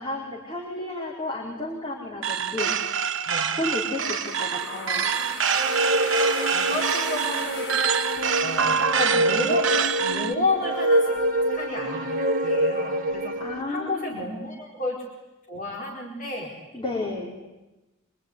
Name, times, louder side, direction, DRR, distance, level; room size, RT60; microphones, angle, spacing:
voice 1, 0.0-2.7 3.5-5.1 13.4-14.2 16.7-17.4, left 2 dB, 25° left, -4 dB, 4.9 m, -32 dB
sound 1, 2.2-10.3, right 7 dB, 65° right, 1.3 m, -26 dB
sound 2, 4.1-9.0, left 2 dB, 60° left, 8.0 m, -37 dB
sound 3, 5.5-13.6, right 1 dB, 40° right, 2.0 m, -26 dB
voice 2, 6.5-7.7 8.4-11.1 11.5-12.1 12.4-13.4 13.7-15.0 15.4-16.6, left 2 dB, 40° left, -2 dB, 4.5 m, -31 dB
25.0 x 24.5 x 9.7 m, 1.0 s
head